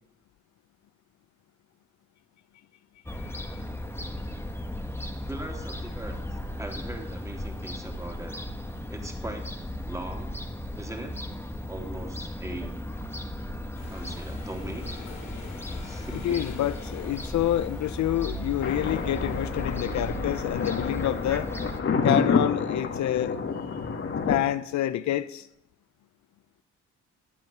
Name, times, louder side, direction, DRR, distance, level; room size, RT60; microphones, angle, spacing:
voice 1, 3.1-3.6 16.1-21.5 22.0-23.4 23.7-23.8 24.3-25.5, left 12 dB, 70° left, 0.7 m, -28 dB
Fowl / Gull seagull, 3.1-21.8, left 1 dB, 10° left, 1.5 m, -36 dB
voice 2, 5.3-8.3 8.9-9.5 9.8-10.4 10.7-11.2 11.7-12.7 13.9-14.9 15.8-16.4, right 1 dB, 10° right, 3.1 m, -40 dB
sound 1, 13.7-19.6, left 5 dB, 85° left, 5.0 m, -49 dB
Thunder, 18.6-24.4, left 5 dB, 45° left, 2.0 m, -28 dB
13.5 x 9.0 x 8.7 m
cardioid pair, 90°, 30 cm